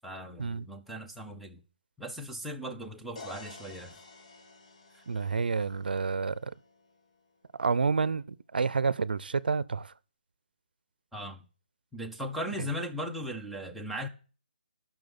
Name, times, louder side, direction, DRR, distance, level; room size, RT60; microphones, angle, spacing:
voice 1, 0.0-1.6 2.0-4.0 4.9-5.0 11.1-11.5 11.9-14.1, equal, ahead, 0.7 m, -38 dB
sound 1, 3.2-7.0, left 3 dB, 45° left, 1.5 m, -50 dB
voice 2, 5.1-6.5 7.6-9.9, right 5 dB, 75° right, 0.6 m, -29 dB
10.5 x 6.1 x 7.0 m
hypercardioid pair, 160°, 5 cm